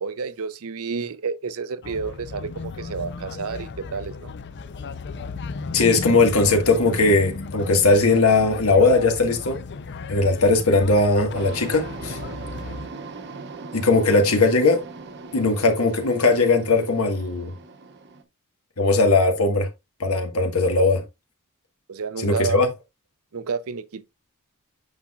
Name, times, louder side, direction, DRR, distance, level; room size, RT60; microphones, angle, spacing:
voice 1, 0.0-4.3 21.9-22.6 23.3-24.0, right 5 dB, 65° right, 0.6 m, -30 dB
sound 1, 1.8-12.9, left 4 dB, 50° left, 0.5 m, -35 dB
voice 2, 5.7-9.6 10.1-12.2 13.7-14.8 15.3-17.5 18.8-19.7 20.0-21.0 22.2-22.7, left 3 dB, 70° left, 1.5 m, -19 dB
sound 2, 11.3-18.2, right 4 dB, 50° right, 1.0 m, -39 dB
8.7 x 5.7 x 2.4 m
head